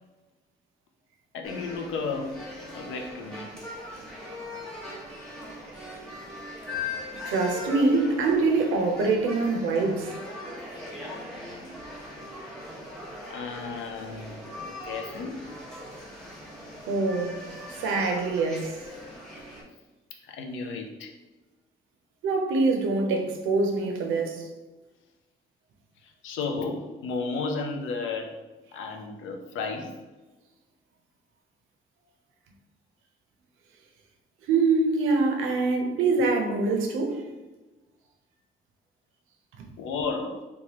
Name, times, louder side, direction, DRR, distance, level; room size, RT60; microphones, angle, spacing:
voice 1, 1.3-2.4 2.7-3.5 13.3-15.4 20.2-21.1 26.0-28.3 28.7-30.0 39.8-40.4, left 4 dB, 80° left, 0.5 m, -33 dB
sound 1, 1.4-19.6, left 2 dB, 5° left, 0.9 m, -40 dB
voice 2, 7.2-10.1 16.9-17.4 17.8-18.8 22.2-24.5 34.5-37.2 39.6-39.7, right 3 dB, 90° right, 0.5 m, -24 dB
3.1 x 2.2 x 2.8 m
cardioid pair, 90°, 20 cm